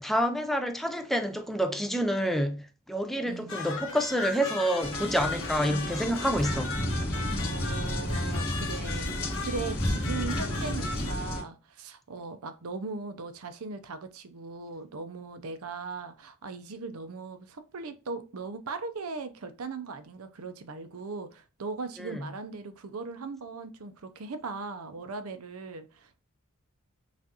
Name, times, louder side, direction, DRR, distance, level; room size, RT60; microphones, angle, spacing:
voice 1, 0.0-6.8 22.0-22.3, equal, ahead, 0.4 m, -28 dB
sound 1, 3.5-11.1, left 4 dB, 60° left, 1.2 m, -37 dB
sound 2, 4.8-11.4, left 1 dB, 45° left, 1.7 m, -32 dB
voice 2, 7.4-26.2, right 4 dB, 70° right, 0.6 m, -39 dB
5.9 x 2.5 x 2.8 m
head